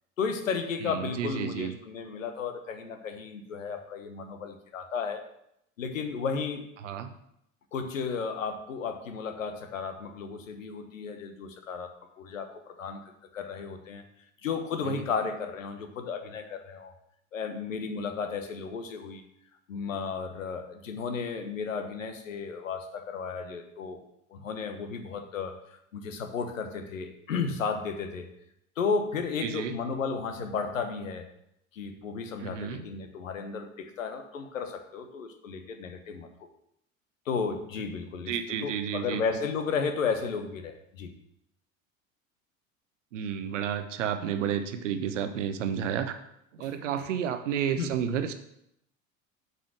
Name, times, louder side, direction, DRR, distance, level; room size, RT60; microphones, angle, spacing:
voice 1, 0.2-5.2 5.8-6.6 7.7-13.0 13.3-14.0 14.4-16.9 17.3-19.2 19.7-24.0 24.3-28.3 28.8-31.3 31.7-36.3 37.3-38.3 38.6-41.1 46.6-46.7 47.7-47.9, left 5 dB, 70° left, 6 dB, 1.3 m, -33 dB
voice 2, 0.8-1.7 6.8-7.1 14.9-15.1 29.4-29.8 32.4-32.8 38.3-39.2 43.1-46.2 46.5-48.3, right 8 dB, 65° right, 9 dB, 1.0 m, -31 dB
7.7 x 5.5 x 6.4 m, 0.77 s
figure-of-eight pair, 75°, 40 cm